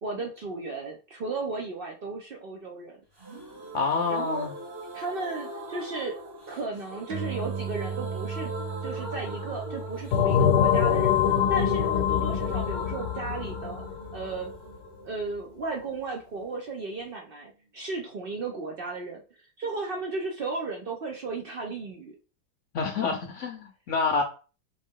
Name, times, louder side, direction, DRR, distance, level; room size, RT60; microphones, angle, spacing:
voice 1, 0.0-3.0 4.1-4.5 4.9-6.2 6.5-8.5 8.8-11.2 11.5-13.8 14.1-14.5 15.0-22.2, right 3 dB, 80° right, 0.5 m, -35 dB
sound 1, 3.2-16.8 17.0-17.1 17.4-17.5, right 2 dB, 35° right, 2.0 m, -41 dB
voice 2, 3.7-4.5 22.7-24.2, left 4 dB, 65° left, 0.8 m, -27 dB
sound 2, 7.1-13.9, right 6 dB, 60° right, 1.1 m, -38 dB
sound 3, 10.1-14.5, left 8 dB, 80° left, 1.2 m, -24 dB
3.8 x 3.5 x 3.7 m
omnidirectional pair, 1.8 m